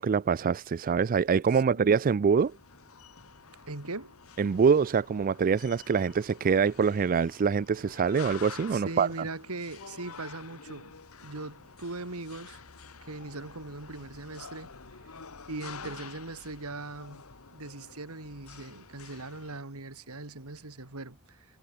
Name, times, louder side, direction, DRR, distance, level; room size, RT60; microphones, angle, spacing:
voice 1, 0.0-2.5 4.4-9.1, right 6 dB, 40° right, 0.4 m, -25 dB
sound 1, 2.4-19.6, left 5 dB, 70° left, 1.7 m, -49 dB
voice 2, 3.7-4.1 8.7-10.9 11.2-12.6 13.0-14.7 15.5-17.2 17.5-21.5, right 2 dB, 90° right, 2.5 m, -40 dB
head